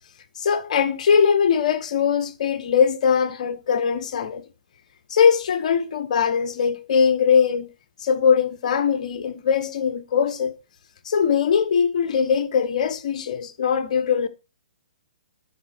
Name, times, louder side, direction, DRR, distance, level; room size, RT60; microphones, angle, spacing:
voice 1, 0.4-4.4 5.1-7.7 8.0-10.6 11.0-14.3, left 7 dB, 55° left, 1.3 m, -21 dB
11.5 x 4.5 x 4.5 m
hypercardioid pair, 130°, 5 cm